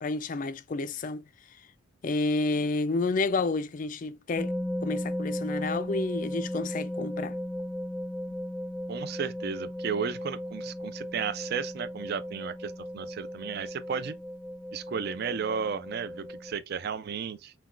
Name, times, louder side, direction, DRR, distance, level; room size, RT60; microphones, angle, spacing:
voice 1, 0.0-1.2 2.0-4.5 4.8-7.4, left 3 dB, 35° left, 0.3 m, -30 dB
sound 1, 4.3-16.5, equal, 10° right, 0.8 m, -36 dB
voice 2, 8.9-14.1 14.7-17.5, right 6 dB, 45° right, 0.3 m, -34 dB
5.9 x 2.2 x 2.4 m
head